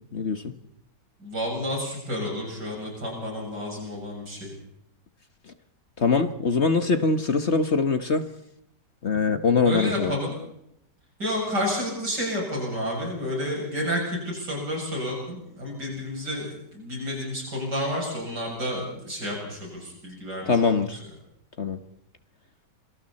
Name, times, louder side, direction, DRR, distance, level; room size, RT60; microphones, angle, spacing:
voice 1, 0.1-0.5 6.0-8.2 9.0-10.1 20.5-21.0 21.6-21.8, left 4 dB, 45° left, 9 dB, 1.4 m, -23 dB
voice 2, 1.2-4.5 9.6-10.3 11.2-20.5 20.9-21.0, equal, 80° right, -2 dB, 8.2 m, -30 dB
27.0 x 25.0 x 4.3 m, 0.75 s
omnidirectional pair, 1.8 m